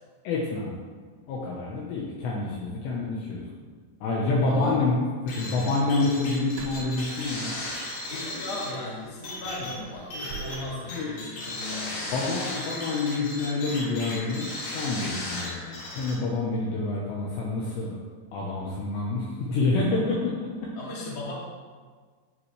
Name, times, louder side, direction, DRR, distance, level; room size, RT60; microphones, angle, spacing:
voice 1, 0.2-0.7 1.3-3.5 4.0-5.0 5.3-7.6 10.9-11.1 12.1-14.5 14.7-18.0 18.3-20.5, left 3 dB, 70° left, -4 dB, 3.0 m, -27 dB
voice 2, 4.5-4.8 8.1-12.2 20.7-21.3, left 2 dB, 35° left, -7 dB, 3.0 m, -37 dB
sound 1, 5.3-16.1, left 1 dB, 90° left, 5.1 m, -36 dB
sound 2, 6.5-8.0 8.4-8.6 9.0-11.1, right 4 dB, 85° right, 2.9 m, -44 dB
16.5 x 5.8 x 3.3 m, 1.6 s
omnidirectional pair, 5.5 m